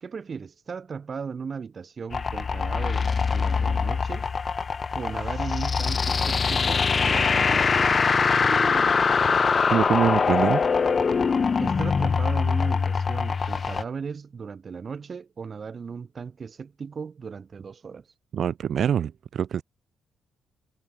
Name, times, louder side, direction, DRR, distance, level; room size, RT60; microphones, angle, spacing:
voice 1, 0.0-4.3 4.9-8.1 8.5-9.4 11.6-18.1, right 5 dB, 40° right, 1.6 m, -37 dB
sound 1, 2.1-13.8, left 5 dB, 40° left, 0.6 m, -23 dB
voice 2, 9.7-10.6 18.3-19.6, right 8 dB, 60° right, 1.0 m, -24 dB
cardioid pair, 90°, 0 cm